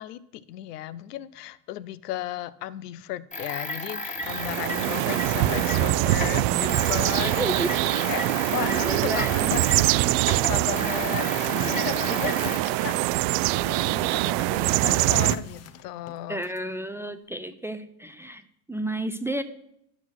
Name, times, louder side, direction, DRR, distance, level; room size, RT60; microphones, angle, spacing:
voice 1, 0.0-7.5 8.0-9.6 10.3-13.0 13.6-16.4, left 13 dB, 90° left, 0.7 m, -35 dB
sound 1, 3.3-9.9 10.2-12.6, left 2 dB, 15° left, 1.7 m, -34 dB
sound 2, 4.2-15.4, right 17 dB, 60° right, 0.5 m, -24 dB
sound 3, 7.4-13.6 14.0-16.6, left 6 dB, 35° left, 0.8 m, -43 dB
voice 2, 7.4-7.7 8.6-9.5 16.3-18.4 18.7-19.4, right 1 dB, 5° right, 0.3 m, -31 dB
11.5 x 6.1 x 6.1 m
supercardioid pair, 105°, 46 cm